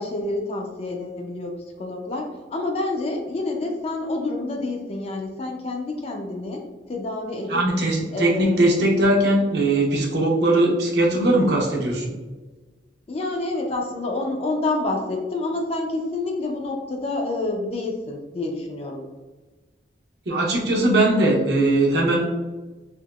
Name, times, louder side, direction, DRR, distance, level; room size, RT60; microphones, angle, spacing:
voice 1, 0.0-6.6 6.9-7.6 8.1-8.6 13.1-19.1, left 2 dB, 30° left, 1 dB, 0.4 m, -28 dB
voice 2, 7.5-12.1 20.3-22.3, right 1 dB, 60° right, -2 dB, 0.7 m, -20 dB
3.4 x 2.9 x 2.3 m, 1.3 s
head